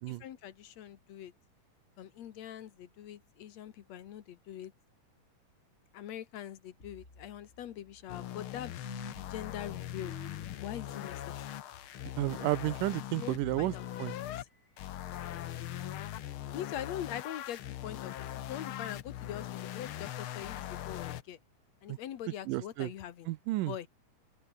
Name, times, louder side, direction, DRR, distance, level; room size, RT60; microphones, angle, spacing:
voice 1, 0.1-1.3 2.0-4.7 5.9-8.8 9.3-10.2 10.6-11.5 13.2-13.8 14.3-14.4 16.5-21.4 21.8-23.3 23.6-23.9, left 11 dB, 60° left, 2.3 m, -43 dB
sound 1, 6.8-15.9, left 2 dB, 20° left, 5.3 m, -55 dB
sound 2, 8.1-14.4 14.8-21.2, left 12 dB, 80° left, 1.2 m, -41 dB
voice 2, 12.2-13.7 14.0-14.2 21.9-22.0 22.5-22.9 23.3-23.7, right 18 dB, 85° right, 2.4 m, -32 dB
omnidirectional pair, 3.7 m